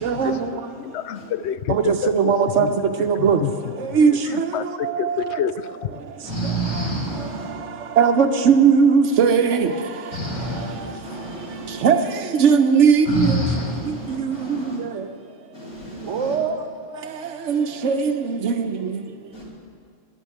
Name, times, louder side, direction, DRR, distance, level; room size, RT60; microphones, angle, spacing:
voice 1, 0.0-0.5 1.7-2.7 3.0-3.4 3.8-4.4 4.8-5.2 8.0-9.7 11.8-12.0 12.4-13.4 14.2-14.6 16.1-16.5 17.5-18.7, right 6 dB, 65° right, 1.1 m, -18 dB
voice 2, 0.8-2.3 2.6-2.7 3.2-3.5 3.8-4.0 4.2-5.6 5.8-5.9, left 9 dB, 65° left, 0.8 m, -28 dB
voice 3, 6.2-7.5 10.1-11.8 13.0-14.8 15.5-16.4 19.3-19.4, right 1 dB, 90° left, 4.1 m, -28 dB
11.5 x 9.2 x 8.6 m
omnidirectional pair, 1.4 m